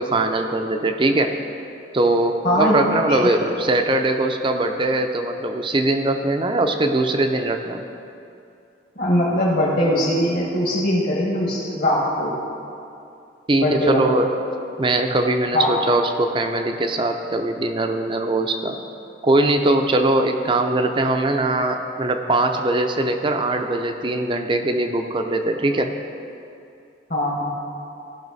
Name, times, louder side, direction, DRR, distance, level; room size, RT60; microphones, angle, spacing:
voice 1, 0.0-1.3 1.9-7.8 13.5-14.3 14.8-18.7 19.2-25.9, right 2 dB, 25° right, 5 dB, 0.5 m, -21 dB
voice 2, 2.4-2.8 3.1-3.2 9.0-12.3 13.5-14.1 15.5-15.7 27.1-27.5, left 1 dB, 50° left, -6 dB, 1.5 m, -21 dB
15.5 x 5.6 x 4.1 m, 2.6 s
head